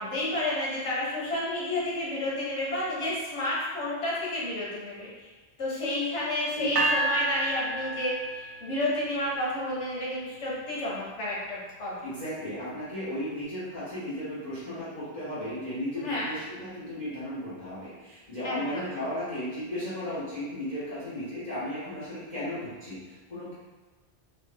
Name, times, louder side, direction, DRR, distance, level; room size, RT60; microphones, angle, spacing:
voice 1, 0.0-5.3 5.6-11.9 16.0-16.3 18.4-18.8, left 1 dB, 90° left, -6 dB, 1.3 m, -31 dB
sound 1, 6.8-8.9, right 2 dB, 90° right, 0.9 m, -29 dB
voice 2, 12.0-23.5, left 1 dB, 35° left, -14 dB, 1.4 m, -35 dB
3.2 x 2.4 x 3.5 m, 1.3 s
omnidirectional pair, 1.2 m